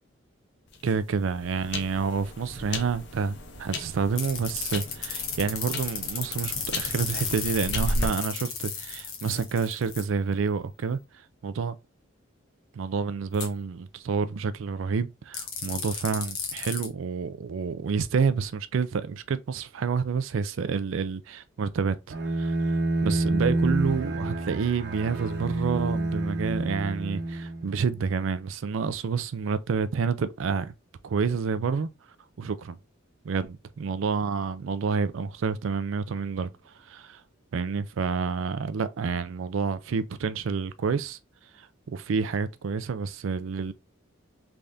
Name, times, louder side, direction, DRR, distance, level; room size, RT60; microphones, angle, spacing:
sound 1, 0.7-8.1, left 1 dB, 55° left, 0.7 m, -35 dB
voice 1, 0.8-11.0 11.4-11.7 12.7-22.6 23.0-30.7 31.0-31.9 32.4-32.8 33.2-37.2 37.5-41.2 41.6-43.7, right 5 dB, 70° right, 0.4 m, -29 dB
sound 2, 4.2-10.0 13.3-13.5 15.3-16.9, left 6 dB, 80° left, 1.1 m, -33 dB
Bowed string instrument, 22.1-27.9, right 2 dB, 50° right, 0.8 m, -28 dB
3.5 x 3.4 x 2.6 m
head